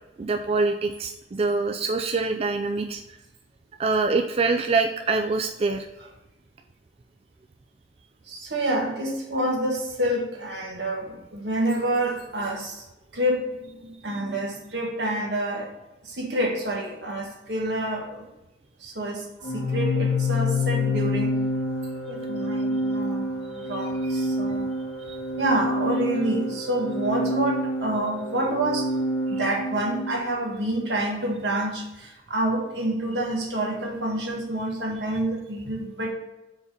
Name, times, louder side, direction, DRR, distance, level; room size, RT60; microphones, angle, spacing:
voice 1, 0.2-3.0 3.8-5.9 23.6-23.7 25.1-25.2, right 3 dB, 35° right, 5 dB, 0.4 m, -25 dB
voice 2, 8.2-12.8 13.1-15.7 16.0-18.2 18.8-21.4 22.0-24.7 25.4-28.9 29.3-36.1, right 1 dB, 80° right, 0 dB, 1.5 m, -28 dB
Organ, 19.4-30.2, left 1 dB, 75° left, 1.9 m, -27 dB
4.9 x 4.1 x 5.0 m, 0.99 s
head